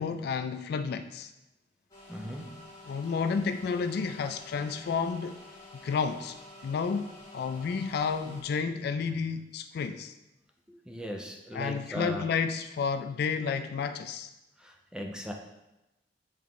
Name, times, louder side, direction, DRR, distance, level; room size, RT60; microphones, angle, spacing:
voice 1, 0.0-1.3 2.9-5.4 5.7-6.4 6.6-10.1 11.5-14.3, left 5 dB, 60° left, 9 dB, 0.3 m, -31 dB
sound 1, 1.9-8.4, left 1 dB, 20° left, 1.8 m, -50 dB
voice 2, 2.1-2.5 10.7-12.3 14.6-15.3, equal, 5° right, 2 dB, 0.6 m, -38 dB
7.8 x 3.6 x 3.6 m, 0.96 s
head